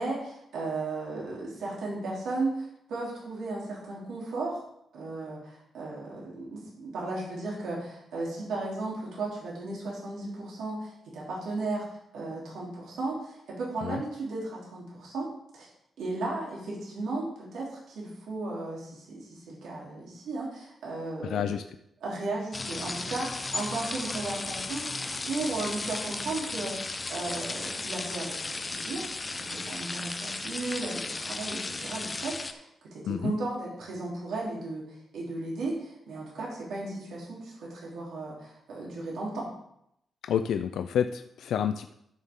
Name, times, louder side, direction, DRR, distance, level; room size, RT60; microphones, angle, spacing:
voice 1, 0.0-4.6 4.9-15.7 16.0-21.6 22.0-39.5, right 2 dB, 80° right, -5 dB, 3.4 m, -35 dB
voice 2, 21.2-21.6 33.0-33.3 40.2-41.9, left 8 dB, 80° left, 9 dB, 0.4 m, -29 dB
sound 1, 22.5-32.5, left 3 dB, 25° left, 0.7 m, -35 dB
13.0 x 6.4 x 3.7 m, 0.75 s
cardioid pair, 125°, 0 cm